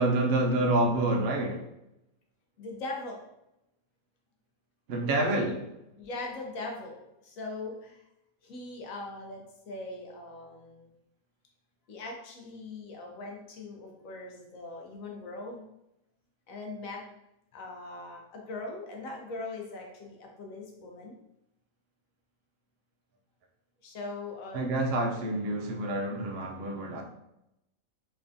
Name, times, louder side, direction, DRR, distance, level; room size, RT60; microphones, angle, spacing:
voice 1, 0.0-1.7 4.9-5.7 24.5-27.0, right 1 dB, 60° right, 0.6 m, -27 dB
voice 2, 2.6-3.2 6.0-8.0 8.4-10.9 11.9-15.7 16.5-17.0 17.5-21.2 23.8-24.7, left 2 dB, 70° left, 1.1 m, -40 dB
3.5 x 3.2 x 2.6 m
omnidirectional pair, 1.5 m